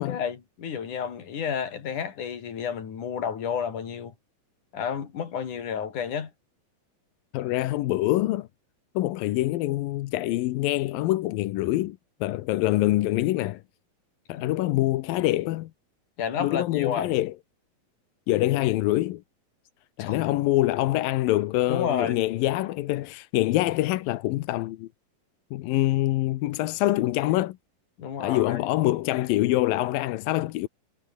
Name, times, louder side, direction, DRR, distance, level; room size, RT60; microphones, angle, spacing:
voice 1, 0.0-4.1 4.7-6.3 14.3-14.7 16.2-17.2 20.0-20.2 21.7-22.2 28.0-28.7, left 7 dB, 60° left, 4.3 m, -31 dB
voice 2, 7.3-8.5 9.0-13.6 14.3-15.7 16.4-17.3 18.3-19.2 20.0-24.9 25.5-27.6 28.2-30.7, left 16 dB, 80° left, 2.6 m, -25 dB
omnidirectional pair, 4.1 m